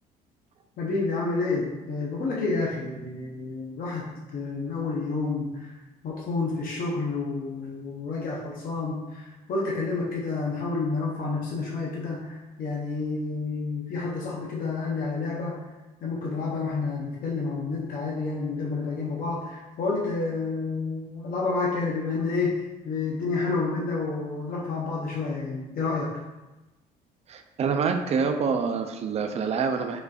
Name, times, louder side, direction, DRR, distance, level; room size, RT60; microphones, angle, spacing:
voice 1, 0.8-5.7 6.0-15.6 16.0-26.1, left 3 dB, 55° left, -4 dB, 0.7 m, -29 dB
voice 2, 27.3-30.0, right 5 dB, 40° right, 5 dB, 0.4 m, -26 dB
5.1 x 2.5 x 2.3 m, 1.1 s
cardioid pair, 110°, 17 cm